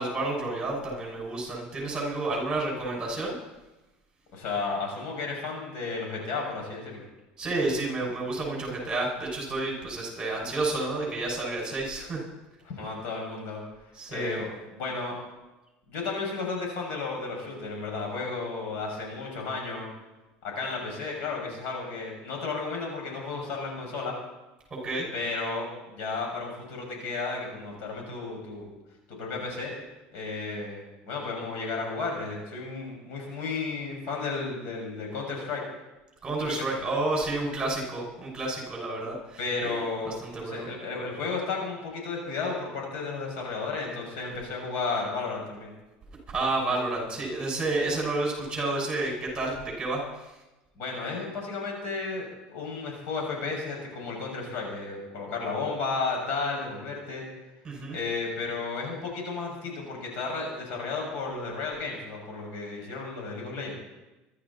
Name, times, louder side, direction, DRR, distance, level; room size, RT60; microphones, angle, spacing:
voice 1, 0.0-3.3 7.4-12.2 14.0-14.4 24.8-25.1 36.2-40.7 46.3-50.0 57.6-58.0, right 2 dB, 20° right, -1 dB, 6.3 m, -30 dB
voice 2, 4.3-7.0 12.6-13.6 14.1-15.2 15.9-19.9 20.4-24.2 25.1-28.7 29.1-29.7 30.1-35.6 36.4-36.6 39.4-45.7 50.7-57.3 57.9-63.7, left 4 dB, 65° left, 0 dB, 6.6 m, -33 dB
24.5 x 12.5 x 4.3 m, 1.0 s
cardioid pair, 130°, 4 cm